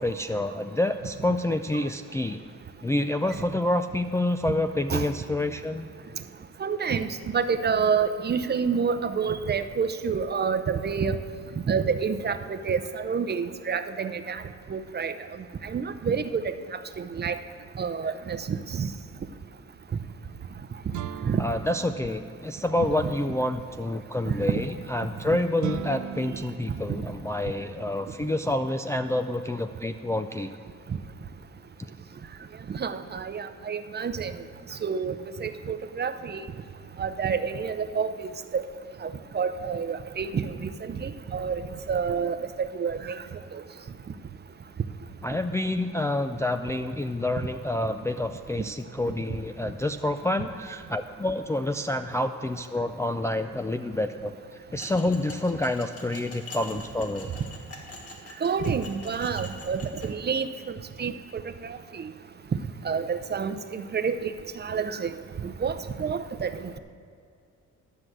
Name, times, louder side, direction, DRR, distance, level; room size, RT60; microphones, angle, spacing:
voice 1, 0.0-2.4 2.8-5.9 21.4-30.5 45.2-57.3, left 1 dB, 10° left, 6 dB, 0.3 m, -28 dB
voice 2, 6.6-11.2 11.7-14.4 14.7-15.1 15.6-16.5 17.0-17.4 17.8-18.9 21.3-21.4 23.0-23.1 24.3-24.4 27.0-27.1 32.7-34.3 34.8-35.2 35.4-36.4 37.0-38.1 38.5-38.6 39.0-39.1 39.3-41.6 41.9-43.2 43.5-43.6 58.4-60.5 61.0-61.8 62.8-64.3 64.6-65.2 65.4-66.8, right 6 dB, 35° right, 10 dB, 0.6 m, -28 dB
sound 1, 20.9-22.9 25.6-27.8, right 10 dB, 75° right, 0.6 m, -39 dB
sound 2, 54.8-60.1, left 3 dB, 50° left, 1.7 m, -45 dB
12.0 x 6.0 x 7.8 m, 2.3 s
cardioid pair, 90°, 30 cm